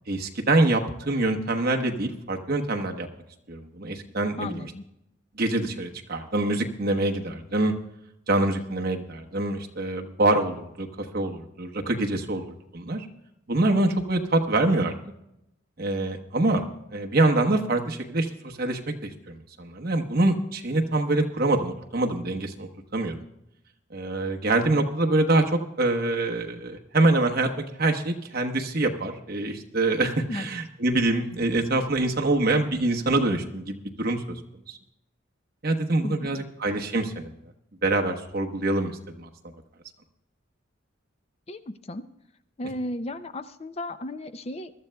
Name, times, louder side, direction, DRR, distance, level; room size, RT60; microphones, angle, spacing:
voice 1, 0.1-3.1 3.5-4.7 5.4-7.7 8.3-13.1 13.5-14.9 15.8-16.6 16.9-23.1 23.9-27.5 27.8-34.4 34.7-34.8 35.6-37.3 37.8-39.3, right 2 dB, 50° right, 3 dB, 1.1 m, -25 dB
voice 2, 4.4-4.8 30.3-30.5 36.0-36.4 41.5-42.0 42.6-44.7, left 1 dB, 30° left, 11 dB, 0.5 m, -34 dB
22.5 x 13.0 x 2.3 m, 0.85 s
head